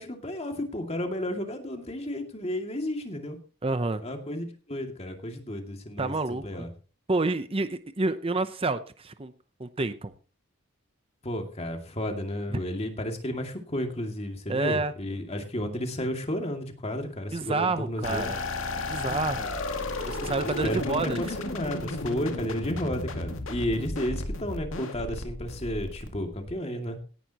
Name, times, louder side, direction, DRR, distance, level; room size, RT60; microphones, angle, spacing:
voice 1, 0.0-3.4 4.0-6.1 6.4-6.7 11.2-18.3 19.0-19.2 20.6-27.0, left 1 dB, 30° left, 4 dB, 2.3 m, -32 dB
voice 2, 3.6-4.0 6.0-6.7 7.1-9.3 9.6-10.1 12.5-12.6 14.5-14.9 17.3-18.4 18.7-19.5 20.0-21.3, right 3 dB, 25° right, 11 dB, 0.6 m, -29 dB
sound 1, 18.0-26.5, left 2 dB, 70° left, 2.1 m, -33 dB
17.5 x 10.5 x 2.9 m, 0.36 s
head